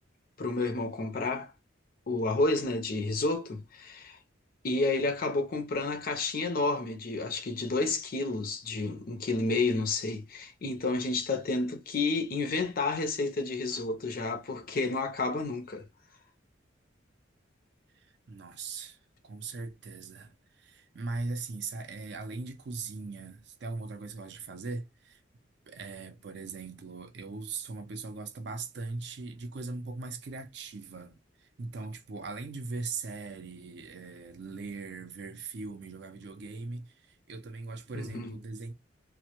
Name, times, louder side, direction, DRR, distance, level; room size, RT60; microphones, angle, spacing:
voice 1, 0.4-1.5 2.1-4.2 4.6-15.9 37.9-38.3, left 3 dB, 45° left, 0.5 m, -30 dB
voice 2, 18.3-19.0 19.2-25.2 25.7-38.7, right 3 dB, 60° right, 0.4 m, -40 dB
2.1 x 2.1 x 2.8 m
head